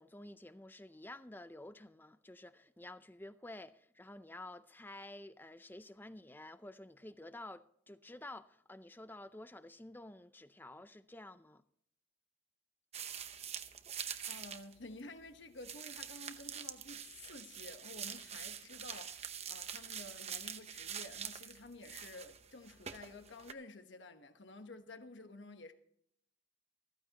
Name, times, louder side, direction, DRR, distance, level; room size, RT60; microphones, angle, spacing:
voice 1, 0.0-11.6, left 1 dB, 10° left, 0.5 m, -51 dB
sound 1, 12.9-14.7 15.0-15.1 15.6-23.5, right 8 dB, 35° right, 0.8 m, -45 dB
voice 2, 14.3-25.7, left 2 dB, 65° left, 1.2 m, -52 dB
15.0 x 14.5 x 2.9 m
head